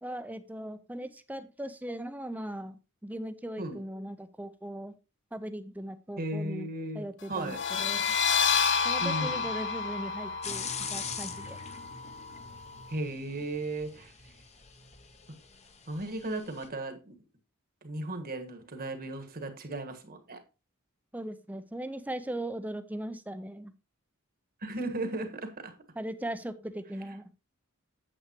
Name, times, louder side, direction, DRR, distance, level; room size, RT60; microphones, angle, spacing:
voice 1, 0.0-5.0 5.3-6.7 6.9-8.2 8.8-11.6 21.1-23.7 26.0-27.3, right 1 dB, 5° right, 0.7 m, -39 dB
voice 2, 6.2-7.6 9.0-9.5 12.9-14.1 15.9-17.1 17.8-20.4 24.6-25.7, right 2 dB, 45° right, 1.5 m, -36 dB
sound 1, 7.4-12.9, left 5 dB, 55° left, 0.8 m, -30 dB
sound 2, 10.4-16.7, left 6 dB, 30° left, 1.0 m, -43 dB
8.9 x 8.0 x 3.0 m
head